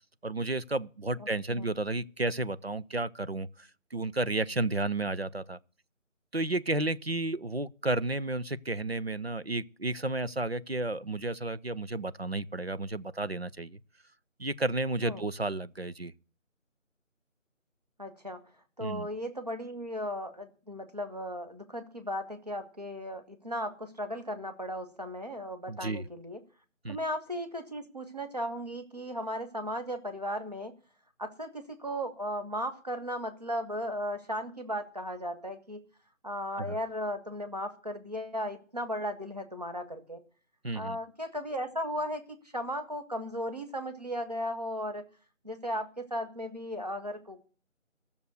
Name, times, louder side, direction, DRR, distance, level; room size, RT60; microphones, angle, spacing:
voice 1, 0.2-5.6 6.3-13.8 14.4-16.1 18.8-19.1 25.7-26.1 26.8-27.0 36.6-36.7 40.6-41.0, right 2 dB, 50° right, 0.6 m, -32 dB
voice 2, 18.0-18.4 18.8-26.4 26.9-30.7 31.2-35.8 36.2-40.2 40.7-42.2 42.5-45.0 45.4-47.4, equal, 30° right, 1.4 m, -36 dB
13.5 x 7.0 x 7.9 m
figure-of-eight pair, 180°, 39 cm